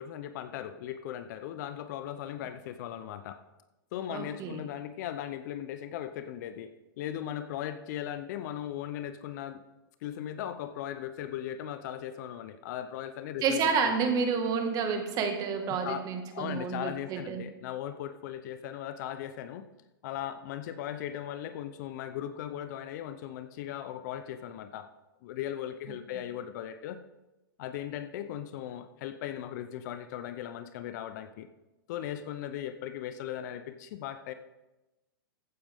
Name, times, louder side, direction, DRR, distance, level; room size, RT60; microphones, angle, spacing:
voice 1, 0.0-3.4 3.9-9.6 10.0-13.9 15.7-19.6 20.0-24.9 25.2-27.0 27.6-31.5 31.9-34.3, left 11 dB, 50° left, 11 dB, 0.8 m, -38 dB
voice 2, 4.1-4.6 13.4-17.4 25.9-26.0, right 5 dB, 30° right, 5 dB, 1.8 m, -30 dB
14.5 x 9.5 x 3.7 m, 1.0 s
hypercardioid pair, 130°, 12 cm